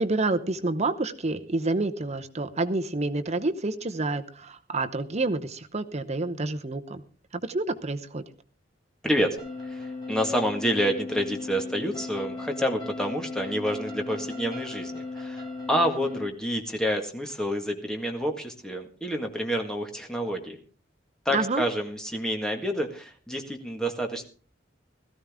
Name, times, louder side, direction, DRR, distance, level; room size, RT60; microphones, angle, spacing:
voice 1, 0.0-7.0 7.3-8.2 21.3-21.6, right 2 dB, 35° right, 9 dB, 0.9 m, -28 dB
voice 2, 9.0-9.4 9.6-20.6 21.3-24.3, equal, 5° left, 3 dB, 1.8 m, -28 dB
sound 1, 9.4-16.2, left 3 dB, 25° left, 5.8 m, -36 dB
17.0 x 14.0 x 3.6 m, 0.39 s
head